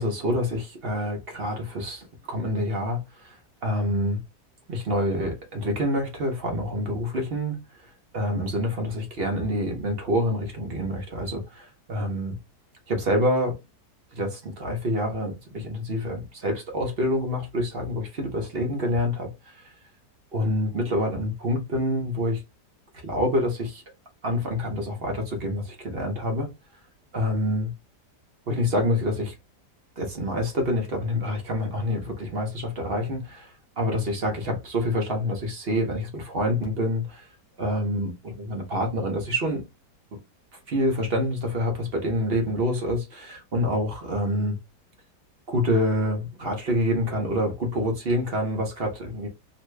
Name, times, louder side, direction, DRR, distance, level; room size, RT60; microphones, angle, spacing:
voice 1, 0.0-4.2 4.7-7.6 8.1-12.4 12.9-13.6 14.1-19.6 20.3-22.4 23.0-23.8 24.2-26.5 27.1-27.7 28.5-29.3 30.0-33.5 33.8-37.3 37.6-39.7 40.7-44.6 45.5-49.3, equal, 45° right, 0.8 m, -27 dB
2.8 x 2.6 x 3.2 m
omnidirectional pair, 1.8 m